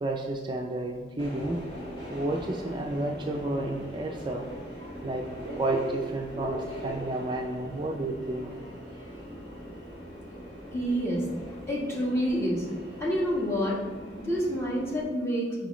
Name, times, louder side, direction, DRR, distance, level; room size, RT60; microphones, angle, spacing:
voice 1, 0.0-1.6 2.1-4.4 5.0-5.2 5.6-8.5, right 2 dB, 25° right, 1 dB, 0.4 m, -31 dB
Subway metro underground, 1.2-15.0, equal, 35° left, 1.3 m, -40 dB
voice 2, 10.7-11.4 11.7-13.8 14.2-15.7, equal, 15° left, -4 dB, 1.3 m, -28 dB
7.5 x 4.9 x 3.1 m, 1.4 s
head